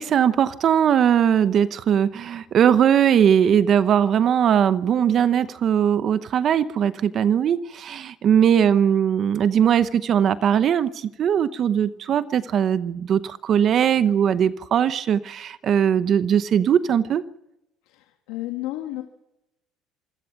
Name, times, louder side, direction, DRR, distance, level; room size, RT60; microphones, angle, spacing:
voice 1, 0.0-17.2, right 8 dB, 45° right, 14 dB, 0.8 m, -20 dB
voice 2, 17.8-19.0, left 16 dB, 90° left, 4 dB, 1.8 m, -32 dB
26.5 x 17.0 x 5.9 m, 0.89 s
cardioid pair, 120°, 0 cm